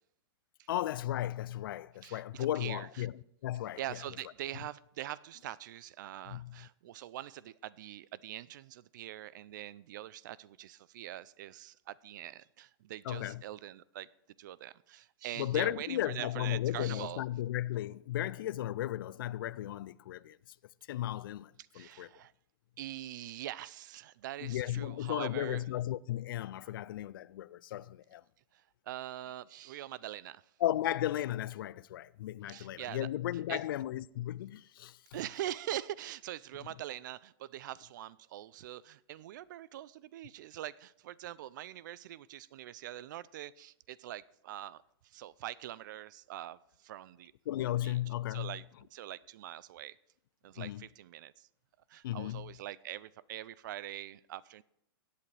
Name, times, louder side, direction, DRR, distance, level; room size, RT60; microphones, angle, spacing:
voice 1, 0.7-4.0 6.3-6.7 13.0-13.4 15.3-20.4 20.9-22.1 24.4-28.2 30.6-35.0 47.5-48.6 50.6-50.9 52.0-52.5, left 13 dB, 60° left, 0.4 m, -35 dB
voice 2, 2.0-3.1 3.8-14.1 14.4-17.2 21.7-22.3 22.8-25.6 28.9-30.4 32.5-33.1 33.5-33.6 35.1-44.8 45.1-46.6 46.8-47.3 47.8-47.9 48.3-48.6 48.9-50.0 50.4-51.3 51.9-54.6, right 13 dB, 50° right, 0.4 m, -43 dB
16.0 x 8.4 x 3.3 m
supercardioid pair, 165°, 13 cm